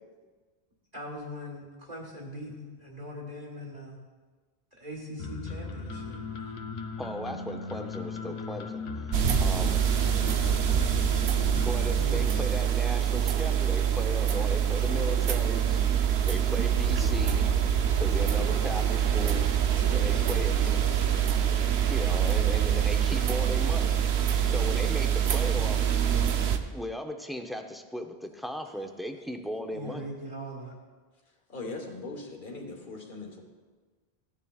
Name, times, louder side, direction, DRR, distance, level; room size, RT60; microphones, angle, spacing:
voice 1, 0.9-4.0 4.8-6.5 9.9-11.6 11.9-12.5 18.1-18.9 19.7-20.9 29.7-30.7, equal, 40° right, -6 dB, 1.5 m, -42 dB
sound 1, 5.2-12.4, left 4 dB, 90° left, 1.0 m, -37 dB
voice 2, 7.0-9.8 11.6-15.8 16.3-17.7 18.0-19.5 19.9-20.8 21.9-24.0 24.4-25.9 26.7-30.1, equal, ahead, 4 dB, 0.5 m, -37 dB
sound 2, 9.1-26.6, right 9 dB, 75° right, 0.9 m, -25 dB
voice 3, 10.4-11.4 31.5-33.4, left 3 dB, 55° left, 1 dB, 1.5 m, -41 dB
16.0 x 9.9 x 2.4 m, 1.4 s
omnidirectional pair, 1.1 m